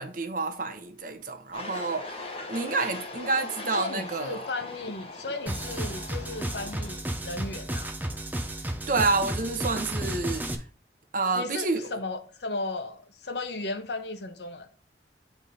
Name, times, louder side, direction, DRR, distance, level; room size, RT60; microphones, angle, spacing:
voice 1, 0.0-4.4 8.9-10.4 11.1-11.9, right 3 dB, 50° right, 0.9 m, -29 dB
sound 1, 1.5-6.9, left 2 dB, 30° left, 1.1 m, -40 dB
voice 2, 3.7-7.9 11.3-14.7, left 2 dB, 70° left, 1.0 m, -35 dB
sound 2, 5.5-10.5, right 1 dB, 10° right, 0.7 m, -33 dB
7.9 x 3.6 x 4.0 m
head